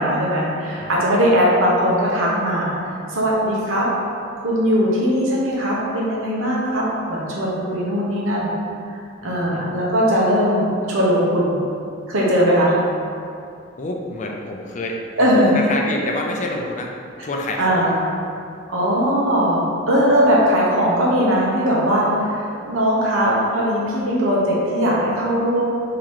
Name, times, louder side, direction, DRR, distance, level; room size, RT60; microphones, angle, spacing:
voice 1, 0.0-2.8 3.1-3.9 4.4-8.5 9.2-11.6 12.1-12.7 15.2-15.5 17.6-18.1 18.7-25.6, equal, 80° right, -5 dB, 1.0 m, -19 dB
voice 2, 9.2-9.7 13.8-16.9 17.2-17.9, left 1 dB, 35° left, 0 dB, 0.4 m, -28 dB
3.8 x 2.9 x 4.6 m, 2.5 s
head